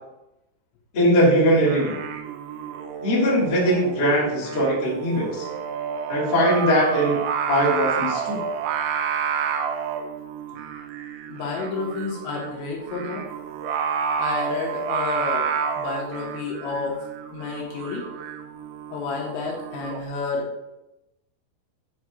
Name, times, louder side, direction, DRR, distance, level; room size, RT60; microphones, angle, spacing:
voice 1, 0.9-2.0 3.0-5.5 6.1-7.2 7.5-8.4, equal, 50° left, -8 dB, 1.2 m, -20 dB
Singing, 1.5-20.0, right 7 dB, 85° right, 2.4 m, -30 dB
voice 2, 11.3-13.2 14.2-15.5 15.8-17.0 17.3-18.1 18.9-20.4, left 4 dB, 80° left, -1 dB, 2.8 m, -30 dB
7.4 x 2.7 x 4.7 m, 0.94 s
omnidirectional pair, 5.6 m